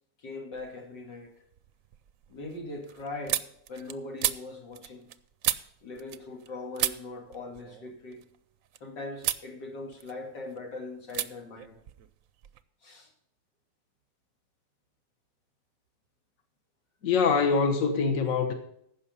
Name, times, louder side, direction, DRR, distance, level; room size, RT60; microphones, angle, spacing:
voice 1, 0.2-1.3 2.3-3.4 3.7-5.1 5.8-8.2 8.8-11.8 12.8-13.1, left 2 dB, 85° left, 1 dB, 3.2 m, -40 dB
sound 1, 0.5-1.1 1.4-6.5 6.8-8.8 9.2-9.5 9.9-10.6 11.1-11.3 11.6-12.6, right 11 dB, 65° right, 0.8 m, -34 dB
voice 2, 17.0-18.5, left 5 dB, 55° left, 6 dB, 1.5 m, -24 dB
15.0 x 5.9 x 5.5 m, 0.74 s
omnidirectional pair, 1.9 m